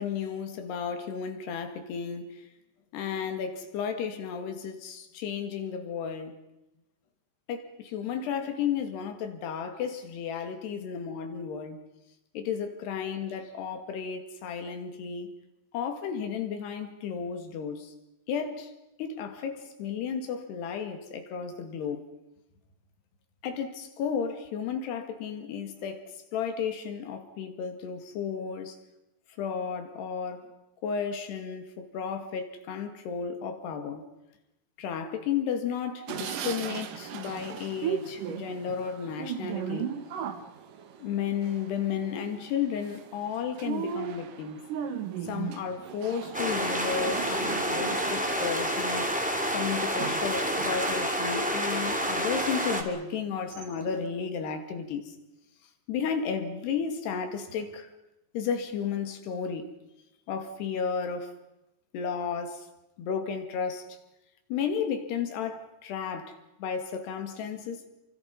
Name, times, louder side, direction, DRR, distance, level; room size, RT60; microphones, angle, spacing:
voice 1, 0.0-2.4 2.9-6.3 7.5-11.8 12.3-15.3 15.7-17.9 18.3-18.7 19.0-22.0 23.4-26.0 26.3-28.8 29.4-30.5 30.8-34.0 34.8-40.0 41.0-44.6 45.2-49.1 49.5-55.1 55.9-57.9 58.3-59.7 60.3-61.3 61.9-62.7 63.0-63.9 64.5-67.8, left 7 dB, 75° left, 4.2 m, -33 dB
sound 1, 36.1-50.9 51.3-52.3 52.8-52.9 53.2-54.0, right 8 dB, 60° right, 2.5 m, -38 dB
sound 2, 46.3-52.8, equal, 5° right, 1.5 m, -29 dB
29.5 x 24.5 x 5.4 m
omnidirectional pair, 4.8 m